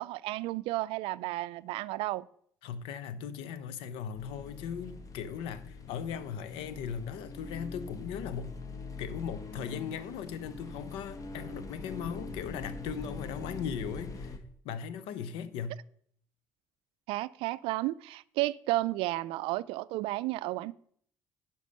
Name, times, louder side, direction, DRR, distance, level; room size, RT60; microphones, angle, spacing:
voice 1, 0.0-2.3 17.1-20.7, right 18 dB, 70° right, 0.4 m, -32 dB
voice 2, 2.6-8.5 9.0-14.3 14.6-15.8, left 7 dB, 75° left, 0.7 m, -38 dB
sound 1, 4.2-14.4, left 3 dB, 35° left, 1.4 m, -43 dB
11.0 x 4.4 x 6.6 m
hypercardioid pair, 55°, 9 cm